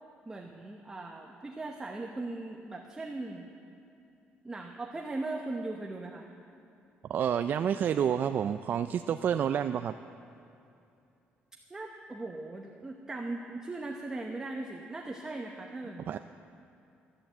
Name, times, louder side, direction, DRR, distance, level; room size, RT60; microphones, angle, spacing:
voice 1, 0.3-3.5 4.4-6.3 11.7-16.1, right 2 dB, 15° right, 0 dB, 0.9 m, -39 dB
voice 2, 7.1-9.9 16.1-16.2, right 8 dB, 50° right, 9 dB, 0.4 m, -29 dB
14.0 x 8.8 x 7.9 m, 2.7 s
cardioid pair, 130°, 4 cm